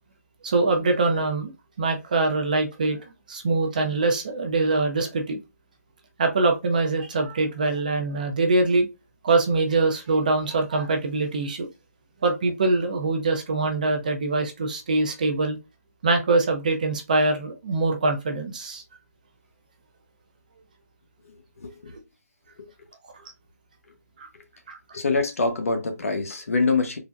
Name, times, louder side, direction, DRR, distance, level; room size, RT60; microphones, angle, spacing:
voice 1, 0.4-1.5 1.8-3.0 3.3-5.4 6.2-8.9 9.2-11.7 12.2-15.6 16.0-18.8 24.2-24.3 24.7-24.8, right 3 dB, 30° right, 0.5 m, -23 dB
voice 2, 21.2-21.9 22.6-22.7 24.9-27.0, left 3 dB, 60° left, 0.9 m, -25 dB
3.8 x 2.1 x 2.4 m
hypercardioid pair, 170°, 9 cm